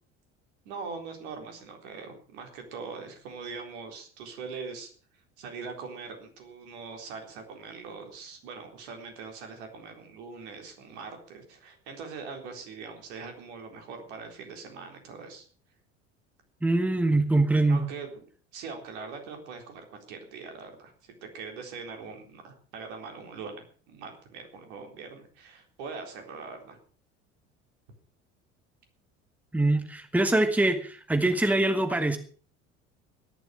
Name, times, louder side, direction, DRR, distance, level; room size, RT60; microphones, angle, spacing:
voice 1, 0.6-4.9 5.4-15.5 17.7-18.2 18.5-26.8, right 5 dB, 60° right, 4 dB, 4.0 m, -42 dB
voice 2, 16.6-17.9 29.5-32.2, right 2 dB, 5° right, 8 dB, 1.8 m, -24 dB
15.0 x 11.5 x 6.6 m, 0.43 s
figure-of-eight pair, 65°, 37 cm